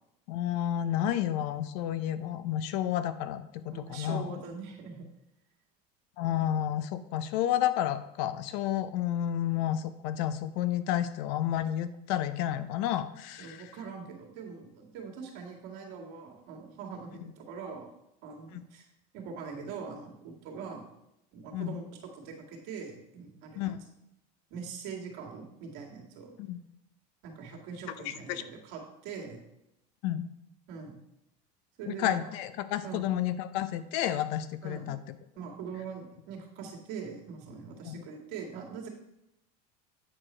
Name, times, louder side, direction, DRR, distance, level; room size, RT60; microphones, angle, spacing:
voice 1, 0.3-4.3 6.2-13.7 18.5-18.6 21.5-21.8 23.6-23.8 26.4-26.6 27.9-28.0 28.3-28.4 30.0-30.3 31.9-35.0 37.9-38.0, left 11 dB, 70° left, 12 dB, 0.7 m, -31 dB
voice 2, 3.7-5.1 6.3-6.4 13.4-17.1 17.4-17.9 18.2-18.9 19.1-20.8 21.3-21.8 22.1-23.8 24.5-26.3 27.2-29.4 30.7-30.9 31.8-32.2 32.8-33.2 34.6-34.9 35.4-38.9, right 6 dB, 70° right, 0 dB, 2.0 m, -42 dB
8.8 x 4.8 x 4.4 m, 0.85 s
supercardioid pair, 105°, 21 cm